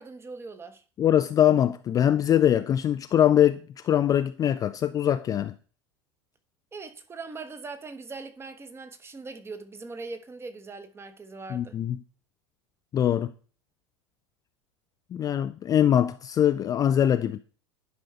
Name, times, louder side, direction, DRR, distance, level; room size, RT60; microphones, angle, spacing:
voice 1, 0.0-0.8 6.7-11.8, right 3 dB, 15° right, 1.1 m, -41 dB
voice 2, 1.0-5.5 11.5-12.0 12.9-13.3 15.1-17.4, left 10 dB, 25° left, 0.4 m, -22 dB
11.0 x 5.5 x 3.2 m
figure-of-eight pair, 80°, 15 cm